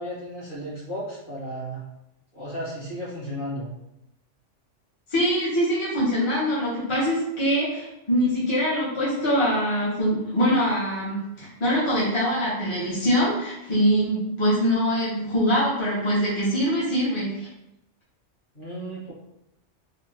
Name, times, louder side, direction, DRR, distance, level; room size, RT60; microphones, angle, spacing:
voice 1, 0.0-1.8 2.3-3.7 18.5-19.1, equal, 45° left, -9 dB, 1.5 m, -34 dB
voice 2, 5.1-17.5, equal, 25° left, -9 dB, 0.9 m, -23 dB
3.4 x 2.4 x 2.8 m, 0.86 s
omnidirectional pair, 1.3 m